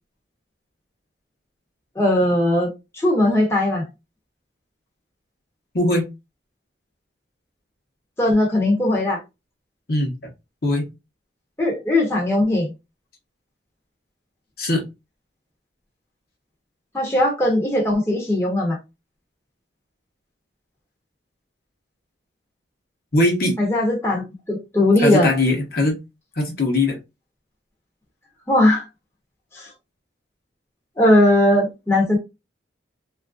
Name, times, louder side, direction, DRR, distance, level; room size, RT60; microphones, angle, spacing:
voice 1, 2.0-3.8 8.2-9.2 11.6-12.7 16.9-18.8 23.6-25.3 28.5-28.9 29.5-29.7 31.0-32.2, left 1 dB, 15° left, 0.7 m, -19 dB
voice 2, 5.7-6.1 9.9-10.1 10.6-10.9 14.6-14.8 23.1-23.6 25.0-26.0 26.3-27.0, left 1 dB, 55° left, 0.9 m, -20 dB
3.1 x 2.5 x 2.4 m
head